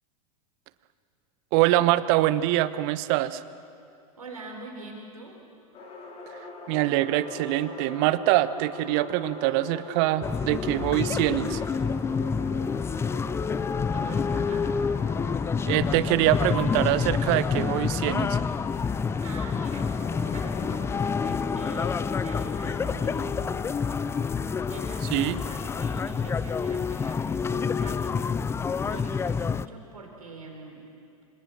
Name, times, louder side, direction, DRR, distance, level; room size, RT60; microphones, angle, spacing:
voice 1, 1.5-3.4 6.7-11.6 15.7-18.4 25.1-25.3, right 15 dB, 50° right, 14 dB, 1.1 m, -24 dB
voice 2, 4.2-5.4 13.9-14.7 19.2-24.1 24.7-28.3 28.8-30.8, right 2 dB, 80° right, 1 dB, 4.4 m, -43 dB
sound 1, 5.7-25.5, left 2 dB, 35° left, 5.9 m, -42 dB
sound 2, 10.2-29.7, left 5 dB, 15° left, 0.5 m, -28 dB
27.0 x 26.5 x 7.6 m, 2.5 s
figure-of-eight pair, 90°, 19 cm